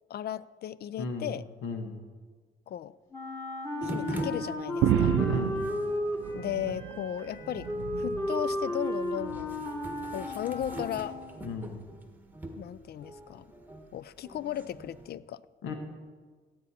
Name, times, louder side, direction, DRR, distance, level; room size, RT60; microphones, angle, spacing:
voice 1, 0.1-1.4 2.7-2.9 3.8-5.1 6.3-7.7 8.0-9.6 10.1-11.2 12.6-13.5 13.9-15.4, left 11 dB, 55° left, 19 dB, 0.4 m, -36 dB
voice 2, 1.0-1.3 1.6-1.9 5.1-5.6 11.4-11.8 15.6-15.7, left 4 dB, 80° left, 5 dB, 1.3 m, -35 dB
Wind instrument woodwind instrument, 3.1-11.4, left 1 dB, 15° left, 2.5 m, -34 dB
sound 1, 3.8-15.1, right 1 dB, 10° right, 1.3 m, -43 dB
sound 2, 4.8-7.0 7.4-8.3 9.2-9.6 10.6-10.7, right 12 dB, 85° right, 0.5 m, -30 dB
15.5 x 8.5 x 4.2 m, 1.5 s
cardioid pair, 90°, 20 cm